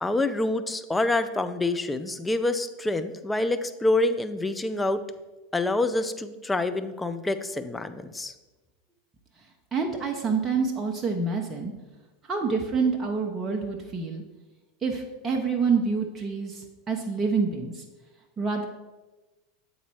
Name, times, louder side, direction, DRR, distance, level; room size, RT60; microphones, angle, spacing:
voice 1, 0.0-5.0 5.5-8.3, left 2 dB, 10° left, 10 dB, 0.5 m, -27 dB
voice 2, 9.7-11.7 12.3-14.2 14.8-17.8 18.4-18.7, right 5 dB, 20° right, 1 dB, 0.8 m, -27 dB
8.3 x 4.0 x 4.5 m, 1.1 s
figure-of-eight pair, 80°, 0 cm